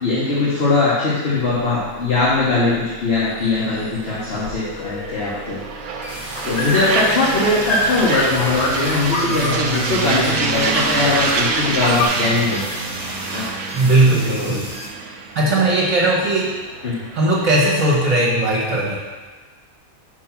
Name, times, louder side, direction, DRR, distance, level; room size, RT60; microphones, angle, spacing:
voice 1, 0.0-5.6 6.4-12.6 13.2-13.5 14.3-14.5 16.8-17.0, left 3 dB, 45° left, -8 dB, 1.5 m, -20 dB
sound 1, 1.4-12.1, left 2 dB, 70° left, 1.3 m, -28 dB
sound 2, 3.2-18.1, right 4 dB, 85° right, 1.2 m, -27 dB
sound 3, 6.0-14.9, equal, 20° left, 2.0 m, -35 dB
voice 2, 13.7-14.7 15.4-16.5 17.1-19.0, right 2 dB, 65° right, -4 dB, 1.8 m, -17 dB
5.3 x 4.7 x 5.9 m, 1.4 s
omnidirectional pair, 1.4 m